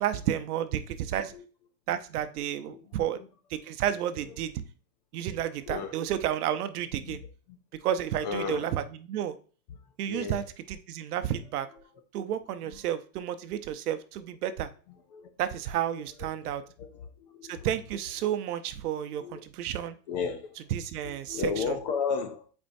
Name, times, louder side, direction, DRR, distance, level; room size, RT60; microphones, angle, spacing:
voice 1, 0.0-1.3 1.9-3.2 3.5-4.5 5.1-7.2 7.8-9.3 10.0-10.4 10.7-11.7 12.1-14.7 15.4-16.6 17.5-20.0 20.7-21.6, right 10 dB, 65° right, 0.8 m, -31 dB
voice 2, 2.7-3.3 5.7-5.9 7.0-7.2 7.5-7.6 8.2-8.7 10.1-10.4 12.6-12.8 15.1-15.3 15.9-16.5 16.8-17.7 19.2-19.4 20.1-20.6 21.0-22.5, left 5 dB, 30° left, 0.4 m, -34 dB
8.4 x 4.5 x 2.6 m
supercardioid pair, 150°, 49 cm